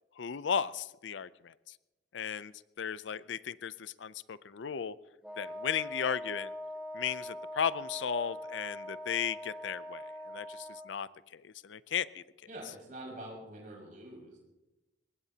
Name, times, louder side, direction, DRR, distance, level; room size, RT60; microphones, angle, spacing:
voice 1, 0.2-1.5 2.1-4.9 5.4-6.5 6.9-12.2, left 7 dB, 80° left, 17 dB, 0.5 m, -35 dB
Wind instrument woodwind instrument, 5.2-11.0, left 1 dB, ahead, 0.8 m, -42 dB
voice 2, 12.5-14.4, right 1 dB, 45° right, -2 dB, 5.9 m, -45 dB
23.5 x 20.5 x 2.9 m, 1.1 s
head